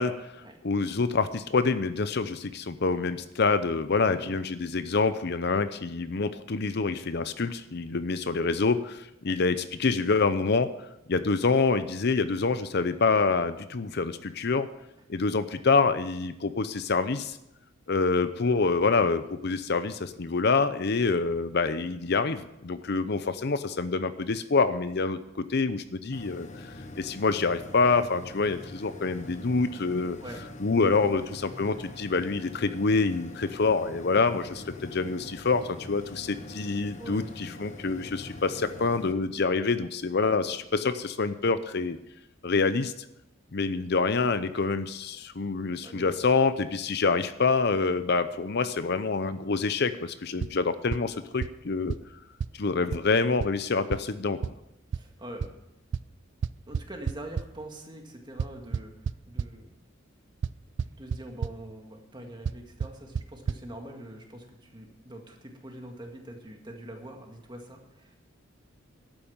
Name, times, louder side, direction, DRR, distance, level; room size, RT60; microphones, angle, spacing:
voice 1, 0.0-10.7 11.1-14.7 15.1-17.4 17.9-30.2 30.6-42.0 42.4-42.9 43.5-51.9 52.6-54.4, left 4 dB, 55° left, 12 dB, 0.7 m, -26 dB
sound 1, 26.1-39.1, left 2 dB, 35° left, 1.1 m, -44 dB
voice 2, 37.0-37.7 45.8-46.2 54.9-55.5 56.7-59.7 60.9-68.2, right 1 dB, 20° right, 2 dB, 2.0 m, -44 dB
sound 2, 50.4-50.5 50.9-51.0 51.4-51.5 51.9-52.0 52.4-52.5 52.9-53.0 53.4-53.5 53.9-54.0 54.4-54.5 54.9-55.0 55.4-55.5 55.9-56.0 56.4-57.4 58.4-59.5 60.4-60.5 60.8-61.2 61.4-61.5 62.5-62.6 62.8-62.9 63.2-63.3 63.5-63.6, right 6 dB, 60° right, 0.3 m, -28 dB
12.0 x 9.0 x 7.2 m, 0.85 s
head